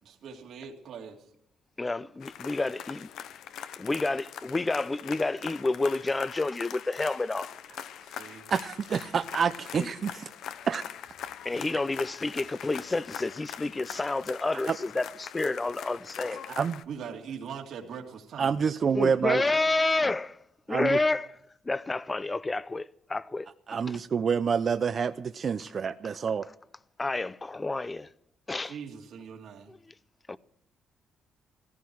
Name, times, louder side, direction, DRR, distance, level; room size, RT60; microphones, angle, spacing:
voice 1, 0.0-1.3 8.0-8.4 16.9-18.6 28.6-29.7, right 7 dB, 70° right, 2.5 m, -41 dB
voice 2, 1.8-3.0 3.8-7.5 9.7-9.9 11.4-16.4 18.9-20.4 20.7-21.4 21.6-23.5 23.9-24.0 27.0-28.1 28.5-28.8 29.7-29.9 30.3-30.4, left 2 dB, 20° left, 0.6 m, -29 dB
sound 1, 2.2-16.8, left 9 dB, 80° left, 0.8 m, -42 dB
voice 3, 8.5-10.3 10.7-10.8 14.7-14.8 16.6-16.7 18.4-19.4 20.7-21.0 23.7-26.5, right 6 dB, 50° right, 0.6 m, -27 dB
16.5 x 14.5 x 4.7 m
cardioid pair, 90°, 0 cm